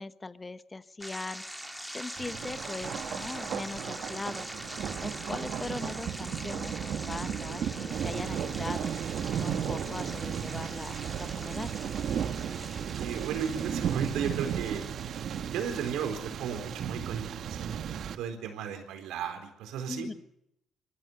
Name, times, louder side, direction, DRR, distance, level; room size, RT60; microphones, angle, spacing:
voice 1, 0.0-1.4 1.9-4.5 5.0-8.9 9.4-11.7 19.9-20.1, left 3 dB, 20° left, 13 dB, 1.1 m, -40 dB
sound 1, 1.0-17.2, equal, ahead, 2.3 m, -44 dB
Thunder, 2.2-18.2, right 8 dB, 65° right, 1.4 m, -35 dB
voice 2, 13.0-14.8 15.4-20.1, right 7 dB, 90° right, 6 dB, 4.2 m, -35 dB
24.5 x 14.5 x 8.0 m, 0.79 s
cardioid pair, 90°, 0 cm